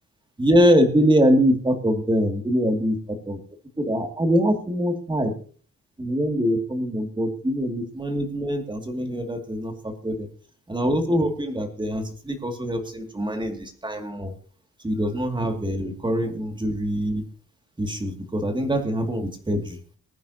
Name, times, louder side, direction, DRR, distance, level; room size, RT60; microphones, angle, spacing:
voice 1, 0.4-3.4 3.8-5.3 6.0-10.3 10.7-14.3 14.8-17.3 17.8-19.8, equal, 15° right, 5 dB, 2.4 m, -23 dB
21.0 x 9.3 x 2.9 m, 0.42 s
wide cardioid pair, 160°, 35 cm